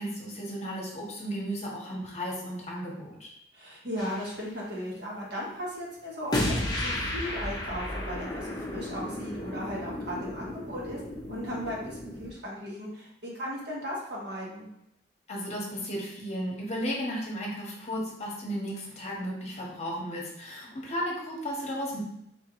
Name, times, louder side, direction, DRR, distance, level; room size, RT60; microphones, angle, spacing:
voice 1, 0.0-3.3 15.3-22.0, equal, 35° left, -2 dB, 1.0 m, -34 dB
voice 2, 3.5-11.0 11.3-14.7, equal, 65° right, -4 dB, 1.5 m, -36 dB
sound 1, 4.0-4.3 6.3-12.3, left 1 dB, 20° left, 0.7 m, -33 dB
4.5 x 3.7 x 3.1 m, 0.78 s
head